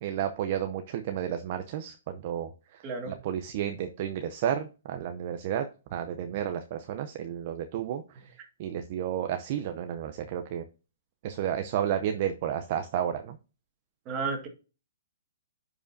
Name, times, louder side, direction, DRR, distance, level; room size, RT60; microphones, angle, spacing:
voice 1, 0.0-10.6 11.2-13.4, right 10 dB, 45° right, 7 dB, 0.6 m, -32 dB
voice 2, 2.8-3.1 14.1-14.5, right 4 dB, 25° right, 3 dB, 2.0 m, -32 dB
10.0 x 4.9 x 2.7 m, 0.33 s
hypercardioid pair, 145°, 0 cm